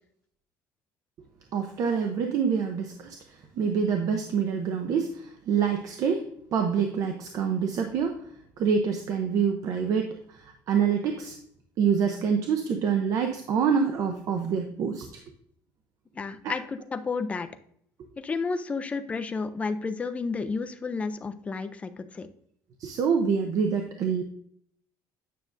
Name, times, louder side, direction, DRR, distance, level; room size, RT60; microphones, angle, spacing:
voice 1, 1.5-6.2 6.5-8.2 8.6-11.4 11.8-15.2 16.4-16.5 22.8-24.2, right 6 dB, 45° right, 4 dB, 0.7 m, -26 dB
voice 2, 16.2-17.5 18.2-22.3, left 4 dB, 15° left, 9 dB, 0.4 m, -31 dB
9.3 x 6.1 x 2.5 m, 0.67 s
cardioid pair, 165°, 8 cm